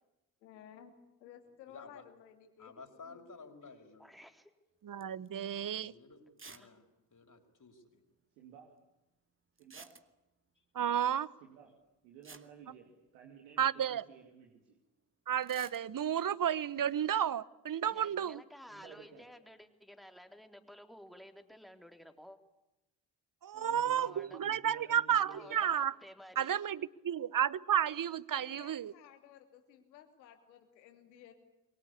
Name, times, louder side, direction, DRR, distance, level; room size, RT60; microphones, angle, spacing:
voice 1, 0.4-0.9 1.2-3.3 25.4-25.9 27.6-27.9 28.4-31.3, left 9 dB, 85° left, 7 dB, 3.0 m, -56 dB
voice 2, 1.7-2.0 2.6-4.1 5.8-6.9 7.1-8.0, left 4 dB, 35° left, 4 dB, 5.4 m, -53 dB
voice 3, 4.0-4.5 6.6-6.7 17.8-22.4 24.0-24.4 25.3-26.5, equal, ahead, 6 dB, 3.8 m, -54 dB
voice 4, 4.8-5.9 10.7-11.3 13.6-14.0 15.3-18.4 23.4-25.9 26.4-28.9, right 9 dB, 40° right, 21 dB, 1.1 m, -32 dB
sound 1, 5.0-5.3 5.7-5.8 6.4-6.7 7.0-7.1 7.2-7.3 9.6-10.4 11.8-11.9 12.2-13.4 15.4-15.8, right 3 dB, 25° right, 2.3 m, -53 dB
voice 5, 8.4-8.7 9.6-10.0 11.4-11.8 12.0-14.8 18.7-19.3 23.5-25.5, right 7 dB, 80° right, 2 dB, 2.8 m, -55 dB
28.0 x 23.0 x 8.5 m, 0.95 s
hypercardioid pair, 40°, 50 cm